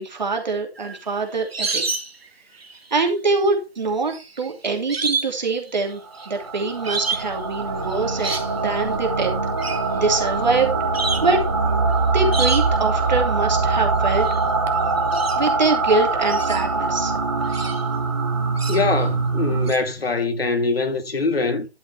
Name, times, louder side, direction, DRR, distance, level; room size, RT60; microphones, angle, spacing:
voice 1, 0.0-1.9 2.9-6.0 6.3-9.3 9.7-10.7 11.2-11.4 12.1-14.3 15.4-17.1, right 3 dB, 45° right, 2.9 m, -24 dB
sound 1, 0.8-2.3 2.5-3.1 4.1-5.4 5.7-6.3 6.8-7.3 7.9-8.5 9.6-9.9 10.5-10.6 10.9-11.4 12.3-12.9 14.2-14.4 14.7-15.8 16.2-17.8 18.6-19.0 19.7-19.8, right 4 dB, 70° right, 2.0 m, -28 dB
sound 2, 6.2-19.7, right 3 dB, 25° right, 1.0 m, -23 dB
voice 2, 18.7-21.7, left 3 dB, 65° left, 2.0 m, -23 dB
12.0 x 5.8 x 4.4 m
figure-of-eight pair, 175°, 32 cm